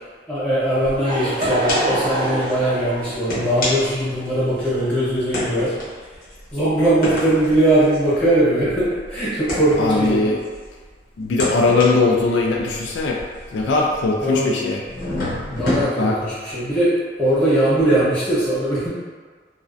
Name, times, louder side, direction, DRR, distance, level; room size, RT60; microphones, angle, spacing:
voice 1, 0.3-5.7 6.5-10.2 14.2-14.5 15.5-18.9, right 1 dB, 5° left, -12 dB, 0.9 m, -20 dB
Laughter / Crowd, 0.6-5.3, right 1 dB, 30° right, 0.3 m, -26 dB
sound 1, 0.8-1.0 1.4-2.1 2.4-2.5 3.1-4.7 5.3-10.8 11.2-14.3 14.9-15.8, left 1 dB, 50° left, 0.7 m, -29 dB
voice 2, 9.8-10.4 11.2-13.2 13.5-14.8 16.0-16.2, left 3 dB, 80° left, -2 dB, 0.3 m, -19 dB
2.4 x 2.1 x 2.5 m, 1.6 s
head